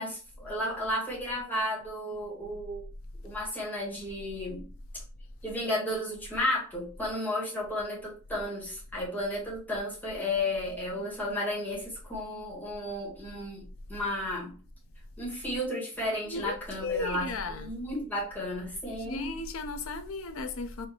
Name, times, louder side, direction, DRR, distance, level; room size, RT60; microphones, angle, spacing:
voice 1, 0.0-2.8 3.2-4.6 5.4-13.6 13.9-14.5 15.2-19.4, left 1 dB, 10° left, 1.6 m, -33 dB
voice 2, 16.2-17.7 18.9-20.9, left 3 dB, 75° left, 0.6 m, -35 dB
4.9 x 2.7 x 2.8 m
head